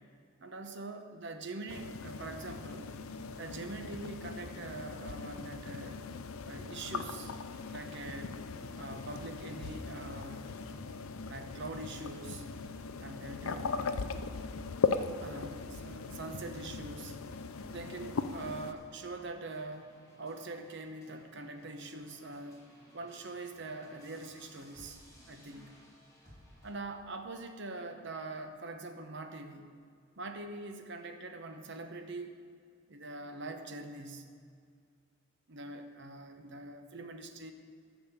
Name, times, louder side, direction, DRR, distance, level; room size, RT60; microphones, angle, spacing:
voice 1, 0.4-2.9 3.4-6.0 6.4-7.3 7.7-8.5 8.7-10.6 11.2-12.4 13.0-14.0 15.2-17.1 17.7-19.9 20.2-22.6 22.9-25.0 25.3-25.7 26.6-29.7 30.2-32.4 32.9-34.3 35.5-37.5, right 2 dB, 60° right, 6 dB, 0.9 m, -43 dB
sound 1, 1.7-18.7, left 4 dB, 90° left, 0.5 m, -39 dB
sound 2, 7.5-26.7, equal, 15° left, 2.7 m, -61 dB
12.5 x 5.1 x 7.2 m, 2.2 s
head